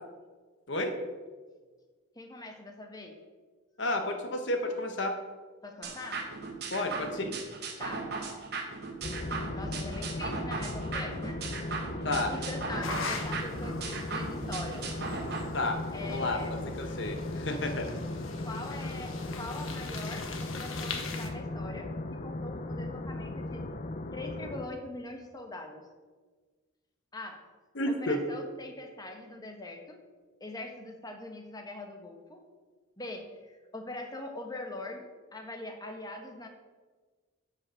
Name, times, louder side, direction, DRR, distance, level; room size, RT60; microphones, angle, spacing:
voice 1, 2.1-3.1 5.6-6.2 7.8-8.1 9.6-11.4 12.1-14.8 15.9-16.5 18.4-21.9 22.2-23.6 24.1-25.8 27.1-27.4 27.9-30.0 30.4-32.4 33.0-36.5, left 2 dB, 20° left, 3 dB, 1.2 m, -42 dB
voice 2, 3.8-5.1 6.7-7.3 12.0-12.3 15.5-17.9 27.7-28.2, left 1 dB, 60° left, 5 dB, 1.0 m, -31 dB
sound 1, 5.8-15.4, right 4 dB, 50° right, 1.4 m, -38 dB
sound 2, 9.0-24.7, left 2 dB, 35° left, 0.5 m, -37 dB
sound 3, 12.8-21.3, left 4 dB, 80° left, 1.2 m, -42 dB
10.5 x 5.4 x 6.3 m, 1.4 s
head